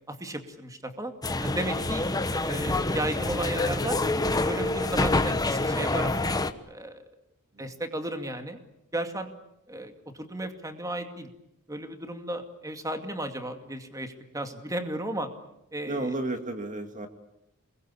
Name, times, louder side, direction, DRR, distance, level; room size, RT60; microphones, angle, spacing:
voice 1, 0.1-1.1 1.4-2.0 2.4-4.0 4.4-6.2 6.6-7.0 7.6-8.6 8.9-9.3 9.7-11.3 11.7-15.3 15.7-16.1, right 1 dB, 15° right, 6 dB, 2.4 m, -34 dB
sound 1, 1.2-6.5, left 2 dB, 15° left, 1.1 m, -27 dB
voice 2, 15.8-17.1, right 2 dB, 35° right, 6 dB, 2.0 m, -32 dB
28.5 x 21.0 x 8.4 m, 0.81 s
head